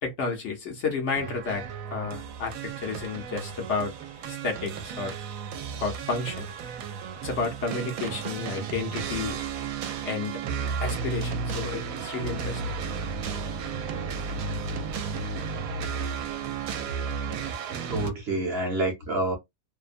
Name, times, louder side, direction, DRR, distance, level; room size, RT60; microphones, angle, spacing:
voice 1, 0.0-3.9 4.3-5.1 5.8-6.5 7.2-9.4 10.0-10.4 10.8-12.7, left 4 dB, 60° left, 1.0 m, -31 dB
sound 1, 1.1-18.1, right 5 dB, 75° right, 1.0 m, -33 dB
voice 2, 17.4-19.3, right 2 dB, 50° right, 1.0 m, -29 dB
2.7 x 2.1 x 2.5 m
omnidirectional pair, 1.5 m